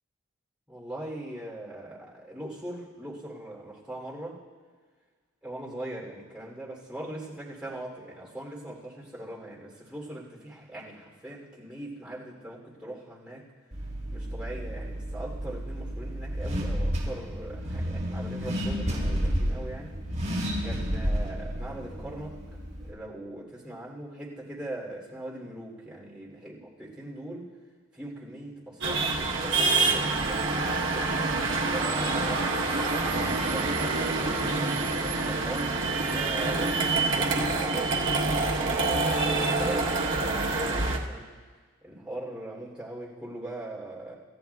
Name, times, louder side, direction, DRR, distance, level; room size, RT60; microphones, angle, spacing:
voice 1, 0.7-4.4 5.4-13.4 14.1-19.9 20.6-22.4 22.8-27.5 27.9-33.2 33.5-34.8 35.3-41.3 41.8-44.1, right 1 dB, 5° right, -5 dB, 3.0 m, -40 dB
Car / Accelerating revving vroom, 13.7-22.9, equal, 30° right, 5.4 m, -31 dB
sound 1, 28.8-41.0, right 3 dB, 55° right, 1.2 m, -26 dB
27.5 x 14.0 x 2.3 m, 1.5 s
head